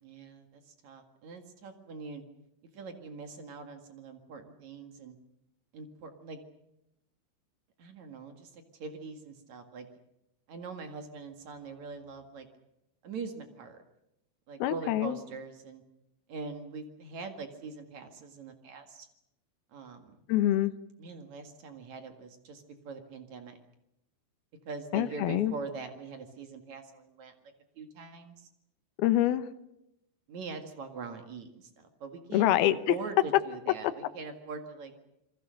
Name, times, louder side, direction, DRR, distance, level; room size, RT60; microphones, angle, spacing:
voice 1, 0.0-2.2 2.7-5.2 5.7-6.4 7.8-9.9 10.5-12.5 13.0-13.8 14.5-15.8 16.3-19.1 19.7-20.2 21.0-23.6 24.7-27.3 27.8-28.5 30.3-32.5 32.9-34.9, right 4 dB, 50° right, 6 dB, 2.4 m, -43 dB
voice 2, 14.6-15.2 20.3-20.7 24.9-25.5 29.0-29.5 32.3-32.9, left 14 dB, 75° left, 11 dB, 2.4 m, -25 dB
28.0 x 21.5 x 6.4 m, 0.86 s
omnidirectional pair, 5.6 m